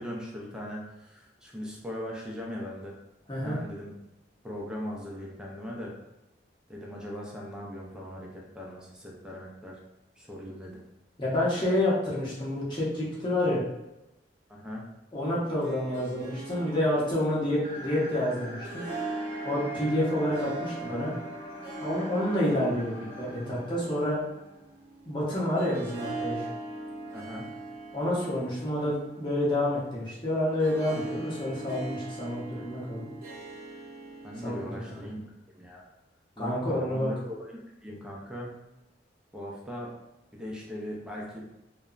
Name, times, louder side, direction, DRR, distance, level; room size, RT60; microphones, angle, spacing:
voice 1, 0.0-3.0 3.4-3.9 4.4-5.9 6.7-9.8 10.2-10.8 14.5-14.8 27.1-27.5 34.2-35.2 35.6-35.8 36.4-38.5 39.3-39.9 40.3-41.4, equal, 5° right, -3 dB, 0.4 m, -39 dB
voice 2, 11.2-13.6 15.1-18.8 19.4-21.1 21.8-24.2 25.1-26.5 27.9-33.1 34.4-34.7 35.0-35.1 36.4-37.1, left 1 dB, 25° left, -7 dB, 0.8 m, -28 dB
Harp, 15.4-35.2, right 2 dB, 55° right, 0.7 m, -41 dB
sound 1, 17.6-24.7, left 1 dB, 70° left, 0.8 m, -44 dB
2.8 x 2.1 x 2.4 m, 0.91 s
head